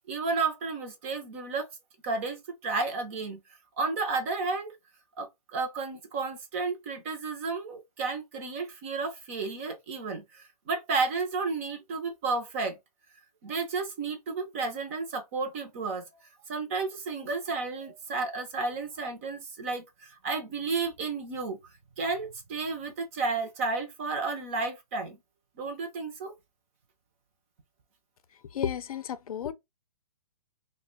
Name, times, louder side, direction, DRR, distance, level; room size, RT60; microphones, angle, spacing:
voice 1, 0.1-1.7 2.0-3.4 3.8-4.8 5.2-12.8 13.4-16.0 16.5-21.6 22.0-25.2 25.6-26.4, right 4 dB, 20° right, 0.5 m, -32 dB
voice 2, 28.5-29.5, left 8 dB, 65° left, 0.5 m, -32 dB
2.5 x 2.1 x 3.7 m
hypercardioid pair, 165°, 20 cm